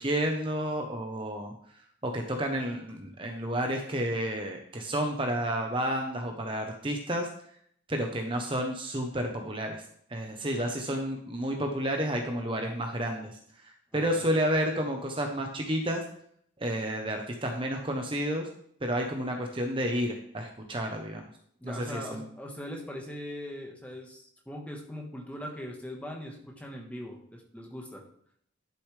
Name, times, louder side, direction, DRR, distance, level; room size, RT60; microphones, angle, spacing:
voice 1, 0.0-1.5 2.0-7.3 7.9-9.8 10.1-16.0 16.6-18.5 18.8-21.2 21.6-22.3, equal, 25° right, 3 dB, 0.9 m, -31 dB
voice 2, 13.9-14.3 21.6-28.0, equal, 5° left, 0 dB, 1.4 m, -41 dB
11.5 x 6.8 x 3.4 m, 0.65 s
head